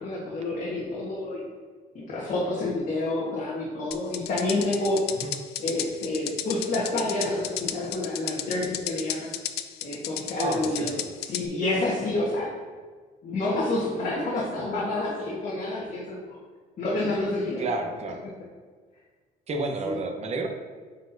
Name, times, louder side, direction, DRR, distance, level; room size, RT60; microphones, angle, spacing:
voice 1, 0.0-1.4 1.9-5.0 5.6-9.3 9.8-12.5 13.2-16.4 16.8-17.7 19.8-20.0, left 2 dB, 50° left, -5 dB, 1.3 m, -28 dB
sound 1, 3.9-11.5, left 11 dB, 70° left, 0.5 m, -33 dB
voice 2, 10.4-10.9 17.6-18.2 19.5-20.5, right 3 dB, 40° right, 4 dB, 0.9 m, -30 dB
9.4 x 4.4 x 2.7 m, 1.5 s
cardioid pair, 110°, 17 cm